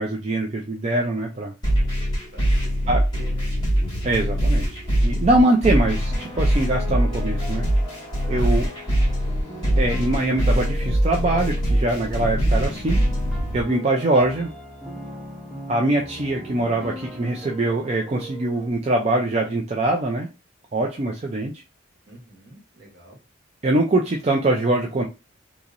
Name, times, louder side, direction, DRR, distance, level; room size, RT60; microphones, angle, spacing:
voice 1, 0.0-1.5 2.9-3.0 4.0-7.7 8.3-8.7 9.8-13.0 13.5-14.5 15.7-20.3 20.7-21.5 23.6-25.0, right 2 dB, 30° right, 0 dB, 0.4 m, -23 dB
sound 1, 1.6-13.6, equal, 20° left, 1.6 m, -22 dB
voice 2, 2.3-3.5 8.3-8.8 22.1-23.2, right 2 dB, 60° right, -2 dB, 1.3 m, -46 dB
sound 2, 6.1-18.7, equal, ahead, 0.7 m, -39 dB
2.9 x 2.9 x 2.5 m, 0.27 s
head